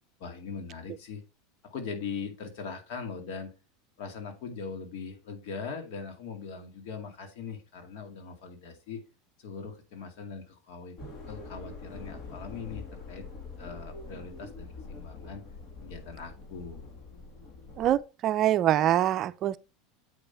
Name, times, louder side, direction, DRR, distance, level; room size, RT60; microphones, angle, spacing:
voice 1, 0.2-1.2 1.6-3.5 4.0-9.0 9.4-11.0 11.3-13.3 13.6-15.4 15.8-16.9, left 5 dB, 65° left, 2.2 m, -40 dB
sound 1, 11.0-18.0, left 3 dB, 45° left, 2.4 m, -44 dB
voice 2, 17.8-19.6, right 12 dB, 45° right, 0.4 m, -24 dB
7.9 x 5.3 x 4.4 m
supercardioid pair, 110°, 0 cm